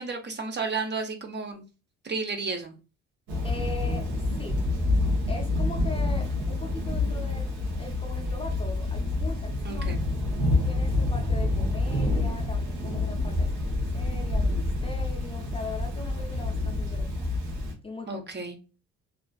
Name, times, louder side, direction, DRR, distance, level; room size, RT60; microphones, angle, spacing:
voice 1, 0.0-1.6 2.0-2.8 9.6-10.0 18.1-18.6, right 4 dB, 35° right, 0.6 m, -32 dB
Thunder / Rain, 3.3-17.7, left 2 dB, 80° right, 0.9 m, -27 dB
voice 2, 3.4-4.7 5.3-7.5 7.8-9.9 10.6-17.3 17.8-18.2, left 3 dB, 20° left, 0.5 m, -40 dB
2.5 x 2.3 x 2.2 m
cardioid pair, 90°, 30 cm